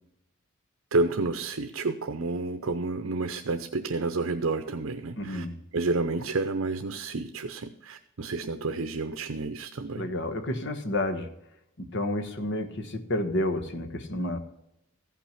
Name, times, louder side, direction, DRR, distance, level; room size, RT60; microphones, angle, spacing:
voice 1, 0.9-5.5 5.7-10.1, right 3 dB, 75° right, 7 dB, 0.7 m, -30 dB
voice 2, 5.2-5.5 9.9-11.3 11.8-14.4, left 1 dB, 60° left, 8 dB, 1.2 m, -30 dB
15.0 x 5.9 x 5.7 m, 0.87 s
head